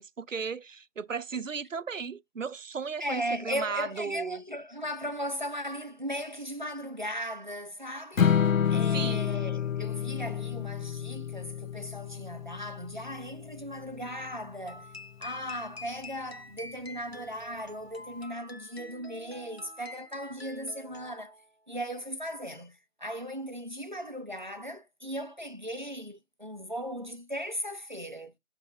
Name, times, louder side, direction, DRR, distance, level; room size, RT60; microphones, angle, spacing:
voice 1, 0.0-4.4 8.7-9.4, right 5 dB, 70° right, 0.7 m, -36 dB
voice 2, 3.0-8.3 8.7-14.9 15.2-21.3 21.7-28.3, equal, 35° right, 0.7 m, -37 dB
Strum, 8.2-14.4, left 8 dB, 80° left, 0.6 m, -29 dB
sound 1, 14.7-21.5, left 2 dB, 50° left, 0.9 m, -47 dB
7.1 x 3.3 x 4.1 m
figure-of-eight pair, 175°, 39 cm